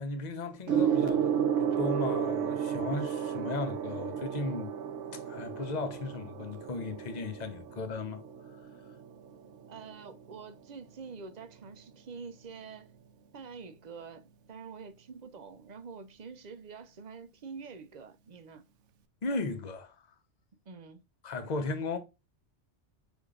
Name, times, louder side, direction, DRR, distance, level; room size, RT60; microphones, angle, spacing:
voice 1, 0.0-4.7 5.1-8.2 19.2-20.0 21.2-22.0, left 3 dB, 40° left, 0.8 m, -36 dB
Gong, 0.7-10.4 11.4-11.6, right 8 dB, 90° right, 1.0 m, -33 dB
voice 2, 9.7-12.9 13.3-18.7 20.7-21.0, right 5 dB, 50° right, 0.5 m, -46 dB
5.5 x 3.4 x 2.3 m
omnidirectional pair, 1.2 m